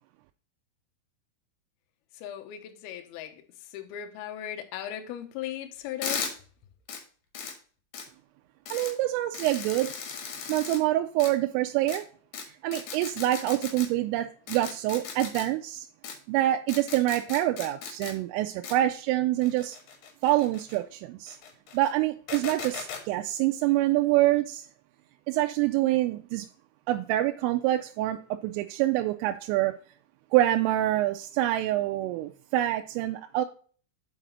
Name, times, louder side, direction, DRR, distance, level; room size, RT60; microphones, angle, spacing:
voice 1, 2.2-3.3 3.7-6.2, left 11 dB, 80° left, 2.2 m, -37 dB
sound 1, 6.0-6.3 6.9-7.0 7.3-7.5 7.9-8.0 8.7-8.9 9.3-10.8 11.2-11.3 11.9-12.0 12.3-12.4 12.7-13.9 14.5-15.4 16.0-16.1 16.7-18.1 18.6-18.7 19.4-20.8 21.3-21.9 22.3-23.0, left 6 dB, 65° left, 2.4 m, -37 dB
voice 2, 8.7-9.9 10.5-12.0 12.6-15.9 16.3-19.8 20.2-21.4 21.7-24.7 25.3-26.5 26.9-29.8 30.3-33.5, right 15 dB, 85° right, 3.1 m, -26 dB
7.5 x 5.0 x 3.8 m
omnidirectional pair, 5.8 m